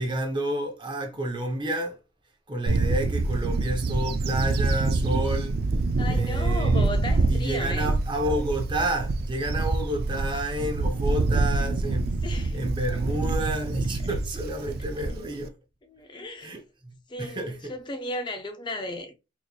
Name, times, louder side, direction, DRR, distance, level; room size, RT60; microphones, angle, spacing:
voice 1, 0.0-2.0 2.5-5.6 6.0-6.9 7.3-12.2 12.5-15.6 16.4-17.7, right 1 dB, 25° right, 0.7 m, -30 dB
Bird / Wind, 2.7-15.4, right 3 dB, 55° right, 0.4 m, -26 dB
voice 2, 6.0-7.9 12.2-12.6 15.9-16.5 17.1-19.2, left 1 dB, 25° left, 0.4 m, -35 dB
3.9 x 3.0 x 2.3 m
head